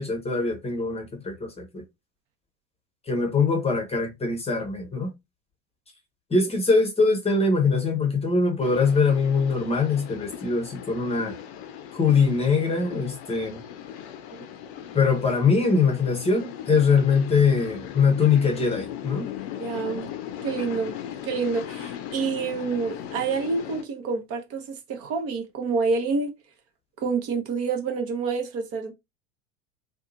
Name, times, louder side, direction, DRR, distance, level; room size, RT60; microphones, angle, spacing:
voice 1, 0.0-1.8 3.1-5.1 6.3-11.4 11.9-13.6 14.9-19.3, left 4 dB, 15° left, 0.8 m, -22 dB
sound 1, 8.6-23.8, left 10 dB, 60° left, 0.6 m, -38 dB
voice 2, 19.6-20.1 20.4-20.9 21.2-24.6 24.9-26.3 27.0-28.9, right 4 dB, 40° right, 0.8 m, -27 dB
2.7 x 2.3 x 2.5 m
hypercardioid pair, 80°, 37 cm